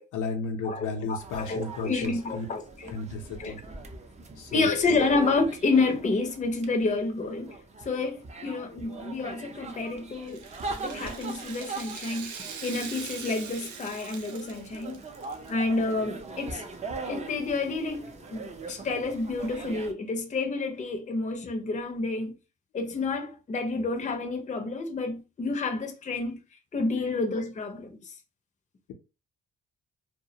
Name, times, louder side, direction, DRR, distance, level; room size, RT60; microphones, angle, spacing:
voice 1, 0.1-2.5 2.9-3.6 4.4-5.0 8.4-9.1 27.0-27.1, left 4 dB, 75° left, 0.6 m, -34 dB
voice 2, 0.6-2.9 3.4-3.5 4.5-7.5 7.8-10.4 10.8-15.0 15.5-16.6 17.1-22.3 22.7-26.4 26.7-28.0, left 3 dB, 25° left, 0.5 m, -29 dB
sound 1, 1.2-19.9, right 3 dB, 25° right, 0.5 m, -42 dB
Rattle (instrument), 10.2-15.5 15.8-15.9 16.7-16.8, right 6 dB, 75° right, 0.6 m, -42 dB
2.2 x 2.1 x 2.7 m
cardioid pair, 90°, 30 cm